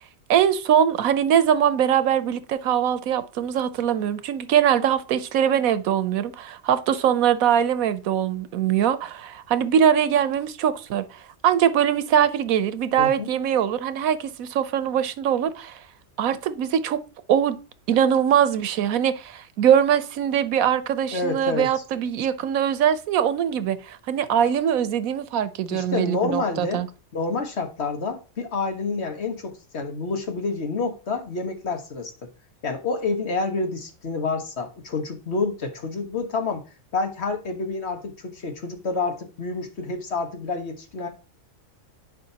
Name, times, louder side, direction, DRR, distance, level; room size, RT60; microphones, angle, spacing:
voice 1, 0.3-11.0 11.4-15.8 16.2-17.0 17.3-17.6 17.9-26.9, right 9 dB, 90° right, 1.2 m, -22 dB
voice 2, 13.0-13.3 21.1-21.8 25.7-26.8 27.1-32.3 32.6-36.6 36.9-41.1, left 3 dB, 55° left, 1.6 m, -28 dB
10.5 x 5.1 x 2.8 m
omnidirectional pair, 1.4 m